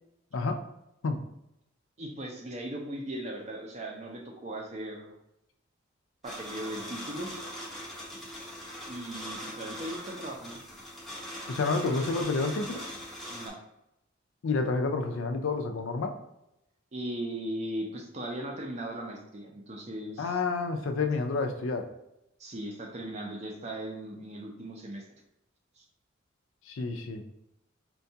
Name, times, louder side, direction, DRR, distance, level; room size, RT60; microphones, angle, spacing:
voice 1, 2.0-5.1 6.2-7.3 8.9-10.6 13.3-13.6 16.9-20.4 22.4-25.0 25.8-25.9, right 1 dB, 35° right, 1 dB, 0.5 m, -38 dB
sound 1, 6.2-13.5, equal, ahead, 0.7 m, -41 dB
voice 2, 11.5-12.8 14.4-16.1 20.2-21.9 26.7-27.2, left 3 dB, 75° left, 6 dB, 0.4 m, -29 dB
4.4 x 2.2 x 2.7 m, 0.85 s
head